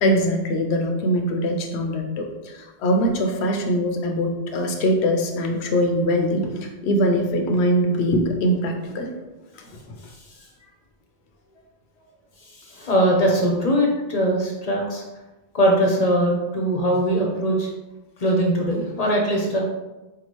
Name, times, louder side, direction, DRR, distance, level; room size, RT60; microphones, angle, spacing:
voice 1, 0.0-9.1 9.6-9.7, equal, 80° left, 3 dB, 0.9 m, -22 dB
voice 2, 12.6-15.0 15.5-17.7 18.2-19.6, equal, 45° left, -1 dB, 0.6 m, -21 dB
4.7 x 2.3 x 2.9 m, 1.1 s
omnidirectional pair, 1.1 m